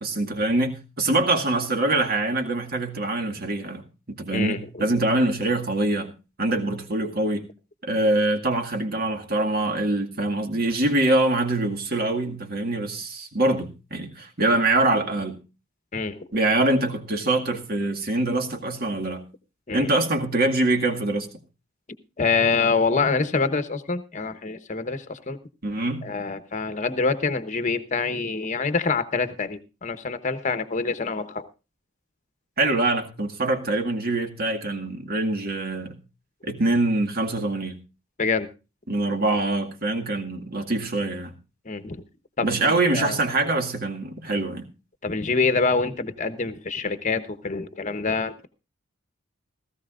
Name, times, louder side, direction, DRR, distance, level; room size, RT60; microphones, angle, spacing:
voice 1, 0.0-6.1 6.4-7.5 7.8-15.4 16.3-19.2 19.7-21.3 25.6-26.1 32.6-36.0 36.4-37.8 38.9-41.3 42.4-44.7, right 2 dB, 45° right, 4 dB, 2.0 m, -24 dB
voice 2, 15.9-16.2 19.7-19.9 22.2-25.4 26.0-31.4 38.2-38.5 41.6-42.0 42.4-43.2 45.0-48.5, left 4 dB, 35° left, 11 dB, 1.0 m, -26 dB
17.0 x 15.0 x 2.5 m, 0.30 s
head